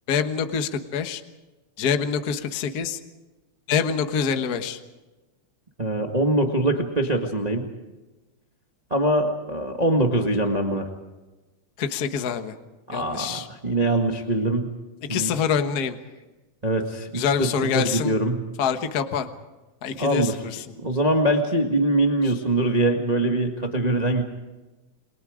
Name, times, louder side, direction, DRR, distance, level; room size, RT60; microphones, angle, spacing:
voice 1, 0.1-1.2 1.8-3.0 3.7-4.8 11.8-12.5 12.9-13.5 15.1-15.9 17.1-18.1 18.6-19.3 19.8-20.6, left 7 dB, 45° left, 7 dB, 1.3 m, -25 dB
voice 2, 5.8-7.7 8.9-10.9 12.9-14.7 15.1-15.3 16.6-17.5 17.7-18.4 20.0-20.4 20.7-24.2, right 1 dB, 20° right, 2 dB, 1.3 m, -23 dB
29.0 x 23.5 x 5.1 m, 1.1 s
omnidirectional pair, 3.4 m